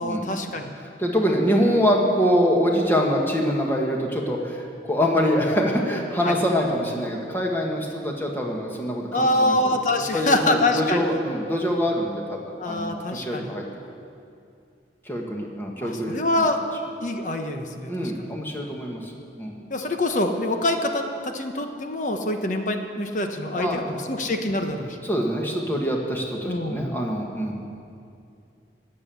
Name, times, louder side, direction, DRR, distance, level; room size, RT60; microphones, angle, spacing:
voice 1, 0.0-0.7 6.2-6.3 9.1-11.0 12.6-13.5 15.8-16.6 17.0-18.3 19.7-25.0 26.5-27.0, left 1 dB, 45° left, 5 dB, 1.1 m, -25 dB
voice 2, 0.7-9.7 10.1-13.9 15.0-16.4 17.9-19.1 19.4-19.6 23.5-24.0 25.0-27.7, equal, 10° left, -1 dB, 1.7 m, -25 dB
19.0 x 7.8 x 7.1 m, 2.5 s
head